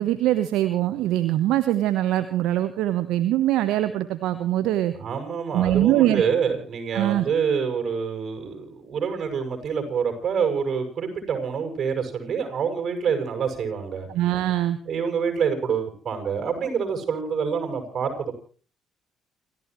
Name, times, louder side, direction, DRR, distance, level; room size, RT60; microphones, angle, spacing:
voice 1, 0.0-4.9 5.5-6.2 6.9-7.3 14.1-14.8, right 13 dB, 80° right, 10 dB, 1.2 m, -22 dB
voice 2, 4.9-14.1 14.9-18.3, right 6 dB, 55° right, 5 dB, 7.3 m, -26 dB
29.5 x 15.0 x 3.2 m, 0.39 s
supercardioid pair, 60°, 0 cm